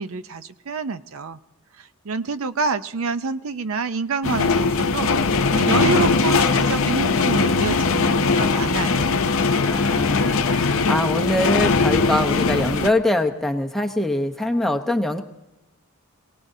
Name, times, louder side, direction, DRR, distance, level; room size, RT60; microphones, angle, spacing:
voice 1, 0.0-1.4 1.8-5.1 5.5-9.2, right 4 dB, 70° right, 12 dB, 0.5 m, -27 dB
sound 1, 4.2-12.9, left 4 dB, 60° left, 0.6 m, -20 dB
voice 2, 9.6-15.2, left 1 dB, ahead, 3 dB, 0.8 m, -23 dB
23.5 x 18.0 x 2.7 m, 1.0 s
head